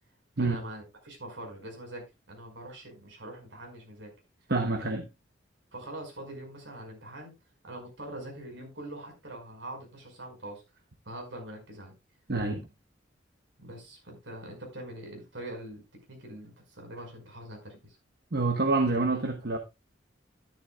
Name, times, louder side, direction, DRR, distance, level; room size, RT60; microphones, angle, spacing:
voice 1, 0.4-4.1 4.7-5.0 5.7-7.3 7.6-10.6 11.0-11.9 13.6-15.8 16.1-18.0, right 1 dB, 75° right, 5.1 m, -43 dB
voice 2, 4.5-5.1 12.3-12.7 18.3-19.6, right 3 dB, 55° right, 1.0 m, -27 dB
11.5 x 11.5 x 2.3 m
head